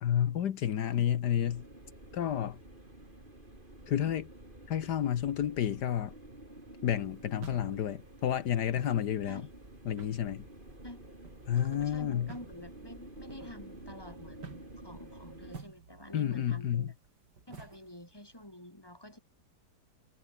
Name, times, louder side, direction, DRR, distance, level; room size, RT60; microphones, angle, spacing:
voice 1, 0.0-1.6 2.1-2.6 3.9-4.3 4.7-6.1 6.8-9.4 9.9-10.5 11.5-12.3 16.1-16.9, left 10 dB, 80° left, 1.7 m, -30 dB
sound 1, 1.4-15.6, right 1 dB, 30° right, 5.8 m, -51 dB
sound 2, 7.0-18.4, right 5 dB, 80° right, 3.3 m, -54 dB
voice 2, 11.5-14.6 14.8-16.9 17.5-19.2, left 1 dB, 15° left, 6.8 m, -48 dB
omnidirectional pair, 1.8 m